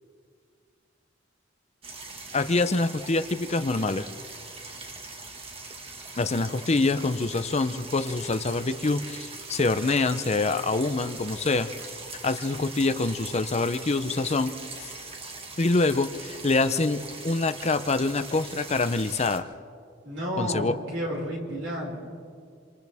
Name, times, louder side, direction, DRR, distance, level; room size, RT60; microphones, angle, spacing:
sound 1, 1.8-19.4, right 3 dB, 30° right, 1.8 m, -41 dB
voice 1, 2.3-4.0 6.2-11.7 12.2-14.5 14.8-14.9 15.6-19.5 20.4-20.7, left 3 dB, 35° left, 11 dB, 0.7 m, -25 dB
voice 2, 20.0-22.0, equal, 80° right, -2 dB, 5.6 m, -31 dB
28.0 x 26.5 x 3.6 m, 2.2 s
head